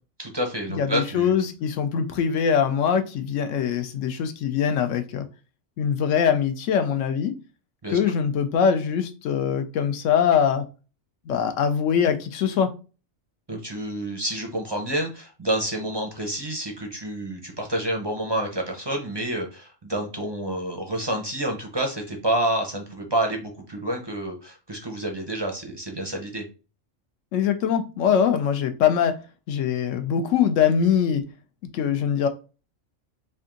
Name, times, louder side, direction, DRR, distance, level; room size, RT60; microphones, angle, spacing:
voice 1, 0.2-1.3 7.8-8.0 13.5-26.4, right 1 dB, 30° right, 2 dB, 0.5 m, -28 dB
voice 2, 0.7-5.3 5.8-7.4 7.9-10.6 11.3-12.7 27.3-29.1 29.5-31.2 31.7-32.3, left 7 dB, 75° left, 8 dB, 0.9 m, -22 dB
3.4 x 2.7 x 3.7 m, 0.33 s
omnidirectional pair, 1.3 m